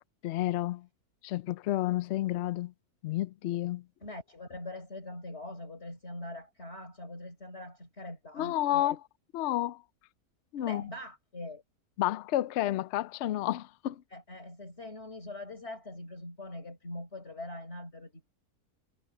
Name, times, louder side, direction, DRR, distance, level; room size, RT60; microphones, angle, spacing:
voice 1, 0.2-0.9 1.2-2.7 3.0-3.8 8.4-9.0 9.3-9.8 10.5-10.9 12.0-14.0, left 14 dB, 65° left, 0.7 m, -30 dB
voice 2, 4.0-9.0 10.6-11.6 14.1-18.3, left 1 dB, 45° left, 5.3 m, -43 dB
omnidirectional pair, 1.6 m